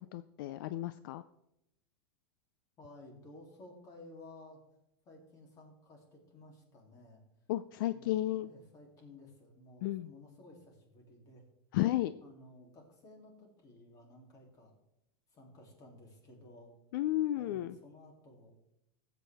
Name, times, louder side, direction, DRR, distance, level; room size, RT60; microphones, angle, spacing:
voice 1, 0.1-1.2 7.5-8.5 9.8-10.1 11.7-12.1 16.9-17.8, left 14 dB, 65° left, 13 dB, 0.4 m, -33 dB
voice 2, 2.8-4.6 5.0-7.2 7.8-11.4 12.2-14.7 15.3-16.7 17.3-18.6, left 2 dB, 30° left, 1 dB, 2.8 m, -55 dB
15.5 x 8.2 x 3.4 m, 0.84 s
supercardioid pair, 150°, 12 cm